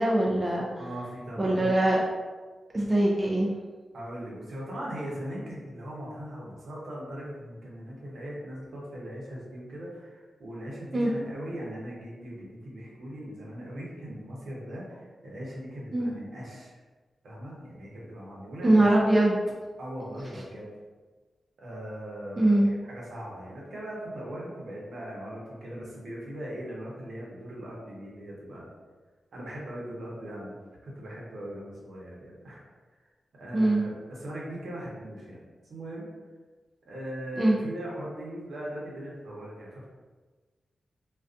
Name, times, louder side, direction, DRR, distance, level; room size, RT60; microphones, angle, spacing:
voice 1, 0.0-0.7 1.4-2.0 2.7-3.5 10.9-11.1 15.9-16.1 18.6-19.4 22.4-22.7 33.5-33.9 37.4-37.6, right 1 dB, 25° right, -3 dB, 0.3 m, -22 dB
voice 2, 0.8-1.7 3.9-16.8 17.2-18.9 19.8-20.7 21.6-28.7 29.3-30.6 30.8-32.6 33.3-35.4 35.7-36.1 36.8-39.9, equal, 70° right, -5 dB, 0.8 m, -39 dB
2.4 x 2.3 x 2.4 m, 1.3 s
wide cardioid pair, 105°, 0 cm